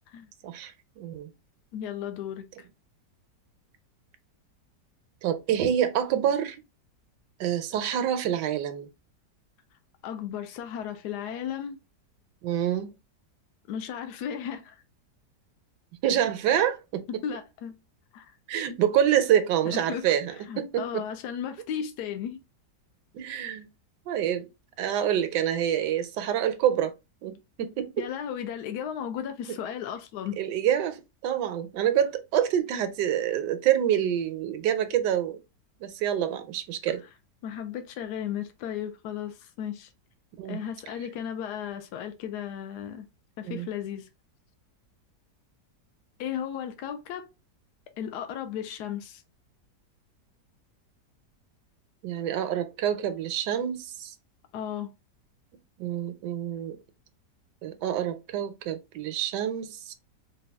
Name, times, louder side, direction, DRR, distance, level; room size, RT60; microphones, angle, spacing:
voice 1, 0.4-1.3 5.2-6.6 7.4-8.9 12.4-12.9 16.0-17.0 18.5-21.1 23.1-23.7 24.1-24.5 24.8-26.9 27.2-28.0 29.2-29.6 30.4-35.4 35.8-37.0 40.4-40.6 43.4-43.7 52.0-54.1 55.8-56.8 57.6-59.9, right 10 dB, 80° right, 1.2 m, -27 dB
voice 2, 1.7-2.7 10.0-11.8 13.7-14.8 17.1-17.7 18.1-18.3 19.7-22.4 28.0-30.4 37.4-39.9 40.5-43.1 43.4-44.1 46.2-47.3 48.0-49.2 54.5-54.9, left 9 dB, 80° left, 1.1 m, -35 dB
4.0 x 2.3 x 3.3 m
omnidirectional pair, 1.8 m